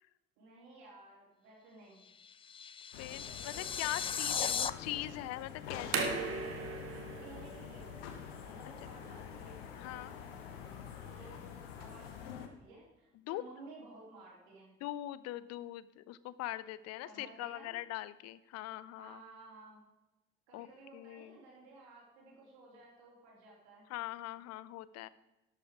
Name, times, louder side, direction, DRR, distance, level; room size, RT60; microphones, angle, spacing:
voice 1, 0.4-2.1 7.2-8.2 8.4-9.6 11.1-14.8 17.0-17.8 19.0-19.8 20.5-23.8, right 2 dB, 65° right, -4 dB, 3.8 m, -55 dB
sound 1, 2.0-4.7, left 7 dB, 20° left, 0.3 m, -37 dB
sound 2, 2.9-12.5, left 8 dB, 70° left, 1.1 m, -47 dB
voice 2, 2.9-6.2 9.8-10.1 13.1-13.4 14.8-19.2 20.5-21.4 23.9-25.1, left 15 dB, 55° left, 17 dB, 0.6 m, -42 dB
sound 3, 5.7-12.3, right 4 dB, 45° right, 1.8 m, -41 dB
12.5 x 8.4 x 5.0 m, 1.0 s
figure-of-eight pair, 45°, 31 cm